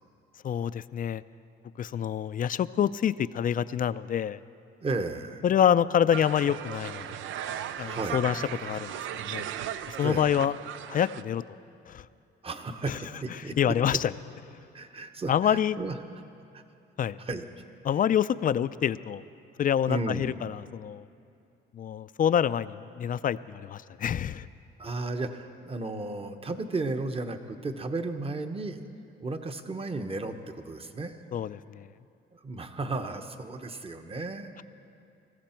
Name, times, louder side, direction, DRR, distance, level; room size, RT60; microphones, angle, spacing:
voice 1, 0.4-1.2 1.8-4.4 5.4-7.2 7.8-8.9 9.2-9.5 9.9-10.5 10.9-11.4 11.9-12.1 12.9-13.0 13.6-14.1 15.3-15.8 17.0-17.2 17.8-19.2 19.6-21.0 21.7-24.5 31.3-31.9, left 9 dB, 45° left, 16 dB, 0.4 m, -27 dB
voice 2, 4.8-5.4 7.8-8.2 10.0-10.3 12.4-14.0 14.7-16.0 16.5-16.6 17.2-17.4 19.9-20.3 24.8-28.8 29.2-31.2 32.3-34.5, right 3 dB, 30° right, 8 dB, 1.0 m, -34 dB
sound 1, 6.1-11.2, right 10 dB, 80° right, 0.5 m, -37 dB
20.0 x 15.0 x 4.5 m, 2.6 s
cardioid pair, 90°, 20 cm